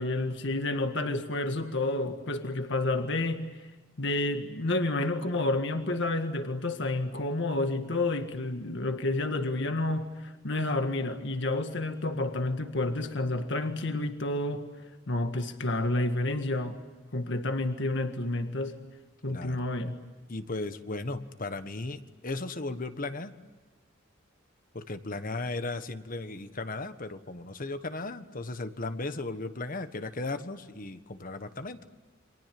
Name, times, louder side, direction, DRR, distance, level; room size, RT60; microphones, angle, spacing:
voice 1, 0.0-3.5 4.0-14.7 15.1-16.8 17.1-18.8 19.2-19.9, left 2 dB, 65° left, 7 dB, 1.8 m, -30 dB
voice 2, 20.3-23.3 24.7-31.8, left 2 dB, 45° left, 10 dB, 1.4 m, -36 dB
30.0 x 24.5 x 7.7 m, 1.3 s
head